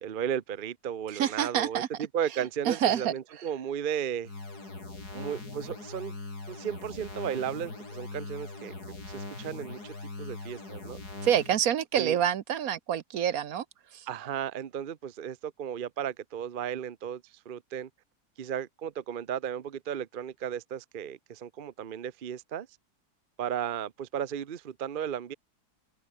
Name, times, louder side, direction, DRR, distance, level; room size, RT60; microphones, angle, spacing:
voice 1, 0.0-4.3 5.1-6.2 6.5-8.7 9.1-11.0 11.9-12.2 14.1-17.9 18.4-22.7 23.4-25.3, right 9 dB, 45° right, 0.8 m, -35 dB
voice 2, 1.1-1.9 2.7-3.1 11.2-13.6 13.9-14.1, right 9 dB, 65° right, 1.3 m, -27 dB
sound 1, 4.2-11.6, left 3 dB, 80° left, 5.0 m, -41 dB
omnidirectional pair, 1.7 m